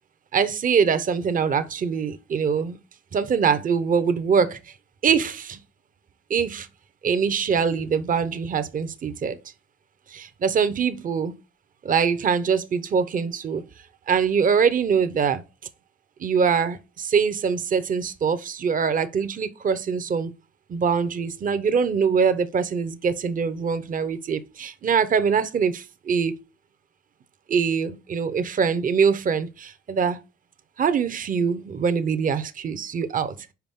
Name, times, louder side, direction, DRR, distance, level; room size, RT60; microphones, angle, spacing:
voice 1, 0.3-2.8 3.1-4.6 5.0-5.6 6.3-6.7 7.0-9.4 10.1-11.3 11.8-13.6 14.1-15.4 16.2-20.3 20.7-26.4 27.5-30.2 30.8-33.5, right 6 dB, 45° right, 0.8 m, -23 dB
5.9 x 5.0 x 3.5 m
cardioid pair, 90°, 20 cm